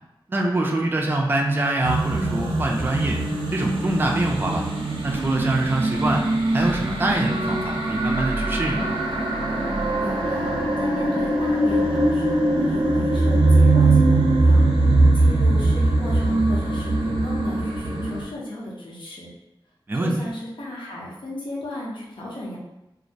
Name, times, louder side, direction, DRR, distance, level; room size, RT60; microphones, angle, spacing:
voice 1, 0.3-3.2 3.5-4.7 5.0-8.9 19.9-20.1, right 2 dB, 25° right, 0 dB, 0.3 m, -24 dB
sound 1, 1.8-18.2, right 2 dB, 85° right, 0.4 m, -21 dB
voice 2, 10.0-14.6 15.1-19.3 20.0-22.6, left 1 dB, 70° left, -5 dB, 0.7 m, -35 dB
2.3 x 2.0 x 2.6 m, 0.91 s
wide cardioid pair, 80°, 9 cm